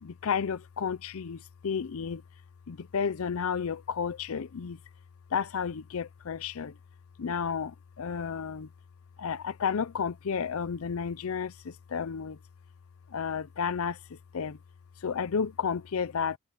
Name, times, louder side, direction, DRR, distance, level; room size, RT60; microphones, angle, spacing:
voice 1, 0.0-2.2 2.7-4.8 5.3-6.7 7.2-8.7 9.2-12.4 13.1-14.6 15.0-16.4, left 6 dB, 70° left, 0.5 m, -32 dB
head